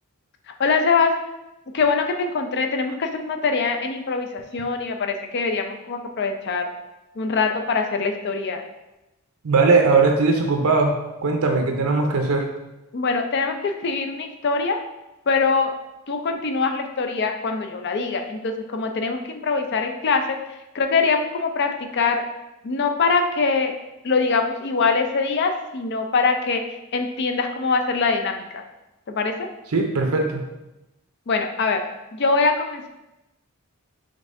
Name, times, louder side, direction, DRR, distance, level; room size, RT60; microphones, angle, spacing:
voice 1, 0.5-1.1 1.7-6.7 7.2-8.6 12.9-14.8 15.3-15.7 16.1-20.4 20.7-22.2 22.6-23.7 24.0-26.6 26.9-28.6 29.1-29.5 31.3-31.8 32.1-32.9, left 4 dB, 50° left, 5 dB, 0.4 m, -23 dB
voice 2, 9.4-12.5 29.7-30.4, right 3 dB, 75° right, 2 dB, 0.6 m, -19 dB
5.3 x 3.5 x 2.6 m, 0.97 s
head